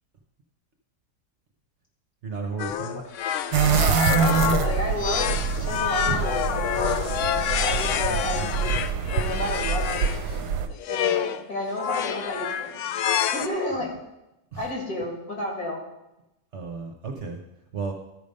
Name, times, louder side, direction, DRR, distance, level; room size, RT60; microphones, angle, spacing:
voice 1, 2.2-3.0 14.5-14.7 16.5-17.4 17.7-17.9, right 4 dB, 50° right, 2 dB, 1.0 m, -33 dB
sound 1, 2.6-10.2 10.8-11.4 11.8-13.5, left 9 dB, 80° left, 0.6 m, -28 dB
sound 2, 3.5-10.7, right 6 dB, 70° right, 1.1 m, -25 dB
voice 2, 3.7-8.7 9.1-12.8 13.3-13.9 14.6-15.8, left 1 dB, 60° left, -1 dB, 2.6 m, -32 dB
13.0 x 5.1 x 5.3 m, 0.93 s
omnidirectional pair, 1.8 m